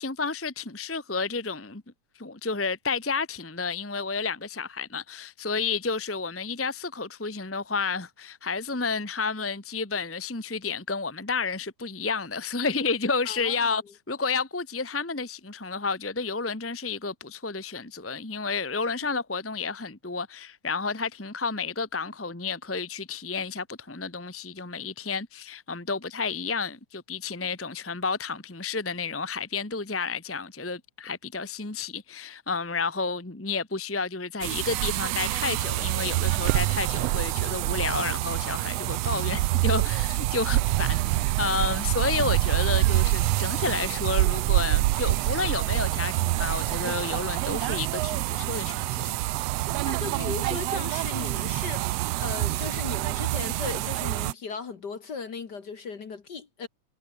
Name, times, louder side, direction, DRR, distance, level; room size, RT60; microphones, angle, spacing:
voice 1, 0.0-1.8 2.1-13.8 14.1-49.1, left 4 dB, 10° left, 0.6 m, -31 dB
voice 2, 13.3-13.7 49.9-56.7, left 5 dB, 40° left, 1.8 m, -37 dB
sound 1, 34.4-54.3, right 17 dB, 80° right, 1.5 m, -26 dB
omnidirectional pair, 3.5 m